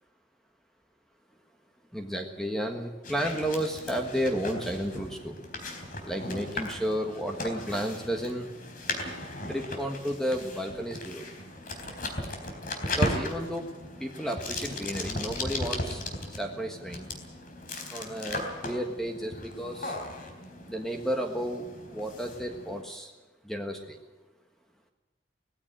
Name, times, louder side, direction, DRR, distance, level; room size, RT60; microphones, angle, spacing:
voice 1, 1.9-5.4 6.0-8.5 9.4-11.3 12.9-13.7 14.0-16.0 16.4-17.1 17.9-19.9 20.7-23.1 23.4-24.0, equal, ahead, 3 dB, 1.5 m, -32 dB
sound 1, 3.0-22.8, left 2 dB, 45° left, 3.8 m, -37 dB
19.5 x 16.0 x 9.0 m, 1.2 s
head